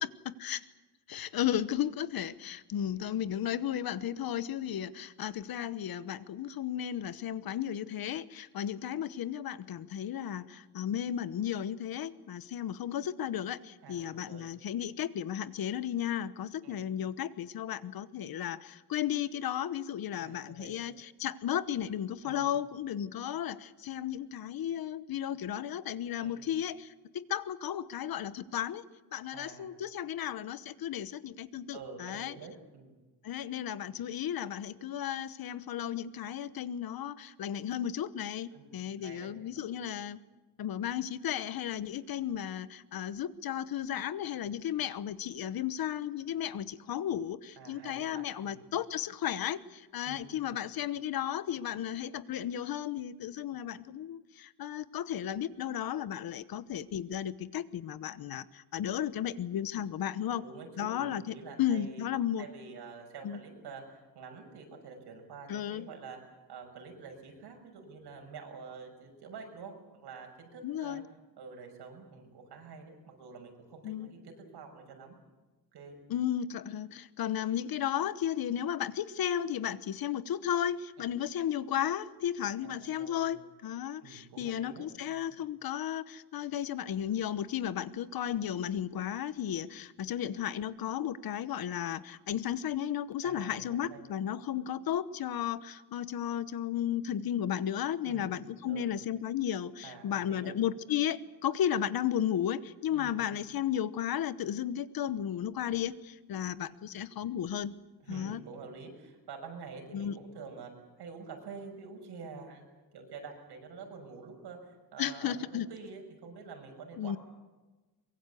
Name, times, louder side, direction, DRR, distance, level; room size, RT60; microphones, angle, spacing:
voice 1, 0.2-0.6 1.1-20.9 21.2-28.8 29.1-32.3 33.2-40.2 40.6-60.4 60.8-62.4 63.2-63.4 65.5-65.9 70.6-71.0 73.8-74.1 76.1-107.7 108.1-108.4 109.9-110.2 115.0-115.7 117.0-117.2, left 10 dB, 65° left, 15 dB, 1.0 m, -34 dB
voice 2, 13.8-14.5 16.6-16.9 20.1-20.7 22.2-22.5 26.2-26.5 29.3-29.7 31.7-33.0 38.5-39.9 47.6-48.6 50.0-50.7 60.3-62.0 62.4-66.2 66.5-71.0 71.4-75.1 75.7-76.0 82.6-83.3 84.0-85.3 93.2-94.0 98.1-98.3 98.7-99.0 99.8-100.6 102.9-103.2 108.0-110.7 111.0-117.2, right 5 dB, 90° right, 3 dB, 6.2 m, -48 dB
24.0 x 22.0 x 8.3 m, 1.2 s
wide cardioid pair, 175°, 39 cm